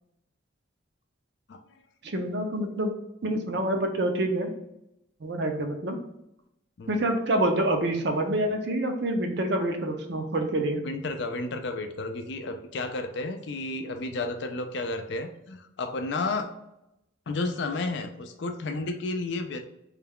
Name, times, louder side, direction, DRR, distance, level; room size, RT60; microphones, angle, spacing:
voice 1, 2.0-2.9 3.2-4.5 5.2-6.0 6.9-10.8, right 1 dB, 55° right, 4 dB, 0.5 m, -27 dB
voice 2, 10.8-16.5 17.3-19.6, left 3 dB, 60° left, 7 dB, 0.4 m, -32 dB
3.2 x 2.3 x 3.6 m, 0.83 s
head